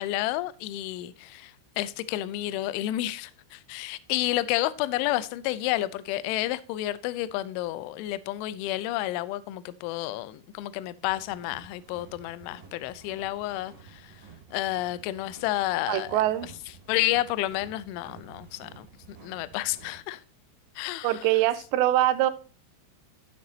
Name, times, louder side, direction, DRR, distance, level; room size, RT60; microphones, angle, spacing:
voice 1, 0.0-14.3 14.5-16.5 16.9-20.2 20.8-21.3, left 15 dB, 80° left, 3.0 m, -30 dB
sound 1, 11.0-20.0, right 5 dB, 35° right, 4.0 m, -51 dB
voice 2, 15.9-16.5 21.0-22.3, right 14 dB, 80° right, 2.6 m, -23 dB
13.0 x 7.2 x 2.8 m
omnidirectional pair, 5.7 m